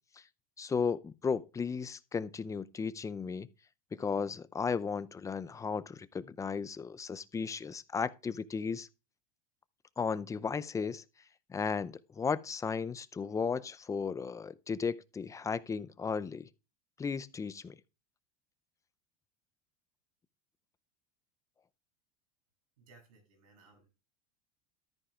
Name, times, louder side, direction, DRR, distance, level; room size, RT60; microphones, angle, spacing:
voice 1, 0.6-3.5 3.9-8.9 10.0-11.0 11.5-16.5 17.0-17.7, left 5 dB, 15° left, 0.5 m, -35 dB
voice 2, 22.8-23.9, right 3 dB, 85° right, 7.0 m, -61 dB
13.5 x 9.7 x 2.4 m
hypercardioid pair, 100°, 18 cm